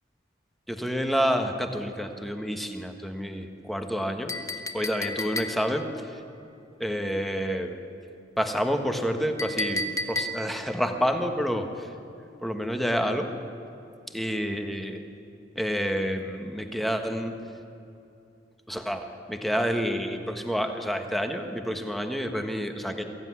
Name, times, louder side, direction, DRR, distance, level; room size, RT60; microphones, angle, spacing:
voice 1, 0.7-4.4 4.7-6.2 6.8-7.7 8.4-11.9 12.4-13.3 14.1-15.0 15.5-17.4 18.7-23.0, equal, ahead, 5 dB, 1.5 m, -29 dB
Chink clink, 4.3-5.9 9.4-10.7, left 1 dB, 15° left, 1.1 m, -32 dB
23.0 x 15.0 x 9.7 m, 2.6 s
head